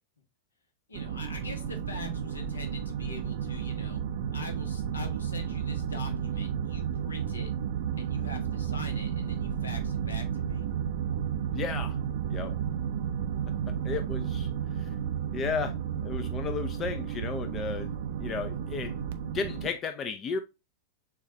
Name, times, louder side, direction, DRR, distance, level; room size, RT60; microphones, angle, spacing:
voice 1, 0.9-4.0 4.3-7.5 8.0-10.7, left 2 dB, 75° left, 1.0 m, -43 dB
sound 1, 0.9-19.7, right 8 dB, 55° right, 0.5 m, -32 dB
voice 2, 11.5-12.0 12.3-12.6 13.8-14.9 15.3-15.7 16.0-19.0 19.3-20.4, left 5 dB, 30° left, 0.4 m, -34 dB
6.6 x 2.4 x 3.2 m
figure-of-eight pair, 90°, 0 cm